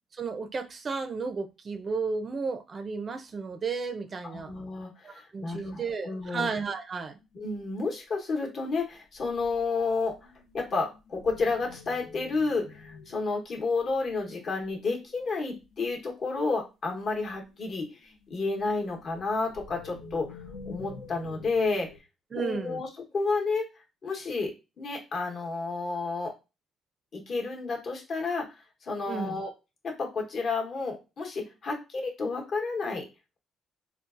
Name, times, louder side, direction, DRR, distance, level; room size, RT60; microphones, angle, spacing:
voice 1, 0.1-4.5 5.0-7.2 22.3-22.8 29.1-29.4, right 4 dB, 35° right, 8 dB, 0.4 m, -33 dB
voice 2, 4.2-6.5 7.3-10.2 10.5-20.4 20.6-21.9 22.4-23.7 24.0-26.3 27.1-28.6 28.8-29.5 29.8-33.1, left 3 dB, 50° left, 1 dB, 1.1 m, -31 dB
sound 1, 7.2-7.8 9.1-13.3 13.9-14.0 14.6-15.9 17.1-22.0, left 4 dB, 85° left, 0.7 m, -48 dB
3.8 x 2.3 x 2.4 m, 0.27 s
cardioid pair, 120°, 0 cm